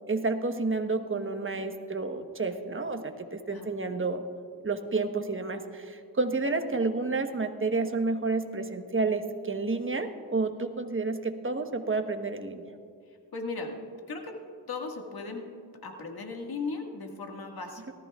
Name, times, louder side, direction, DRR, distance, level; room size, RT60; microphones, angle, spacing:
voice 1, 0.1-4.2 4.6-12.6, right 3 dB, 30° right, 7 dB, 1.1 m, -30 dB
voice 2, 13.1-13.8 14.1-14.3 14.7-15.5 15.8-17.9, left 4 dB, 70° left, 2 dB, 1.9 m, -37 dB
18.5 x 14.0 x 2.4 m, 2.2 s
cardioid pair, 45°, 38 cm